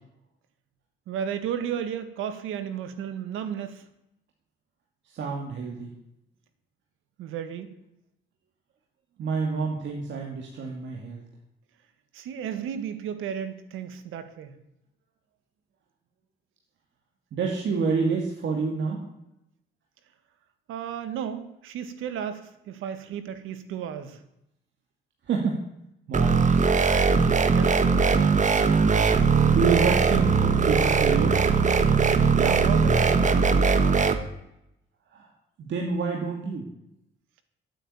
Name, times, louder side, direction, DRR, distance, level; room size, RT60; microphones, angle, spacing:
voice 1, 1.1-3.8 7.2-7.7 12.1-14.6 20.7-24.2 27.5-27.9 32.3-33.3, right 8 dB, 90° right, 9 dB, 1.8 m, -33 dB
voice 2, 5.1-5.9 9.2-11.2 17.3-19.0 25.3-25.6 26.1-26.7 29.5-31.5 35.1-35.3 35.6-36.7, right 5 dB, 65° right, 0 dB, 2.5 m, -28 dB
sound 1, 26.1-34.1, right 5 dB, 40° right, 1.4 m, -20 dB
13.0 x 9.0 x 8.6 m, 0.83 s
cardioid pair, 90°, 20 cm